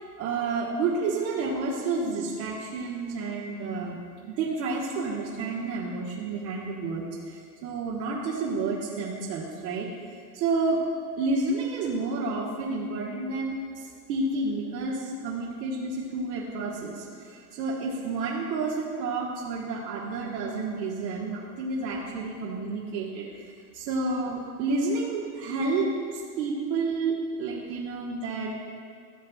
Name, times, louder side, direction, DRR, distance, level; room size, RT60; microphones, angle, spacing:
voice 1, 0.2-4.0 4.3-9.9 10.3-10.8 11.2-28.6, right 3 dB, 80° right, -6 dB, 1.6 m, -30 dB
15.0 x 6.8 x 2.4 m, 2.4 s
supercardioid pair, 130°, 49 cm